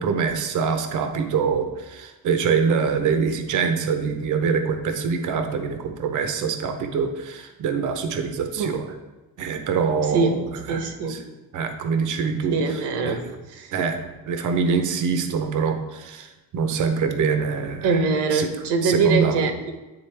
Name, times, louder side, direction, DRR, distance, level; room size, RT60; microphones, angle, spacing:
voice 1, 0.0-8.9 9.4-10.4 10.7-10.8 11.1-11.2 11.5-13.2 13.7-18.0 18.3-18.5 18.8-19.4, right 5 dB, 50° right, 6 dB, 0.7 m, -24 dB
voice 2, 10.1-10.4 10.7-11.2 12.5-13.2 13.5-13.7 17.8-19.7, right 4 dB, 80° right, 6 dB, 1.0 m, -23 dB
9.8 x 3.9 x 3.3 m, 1.1 s
cardioid pair, 150°, 40 cm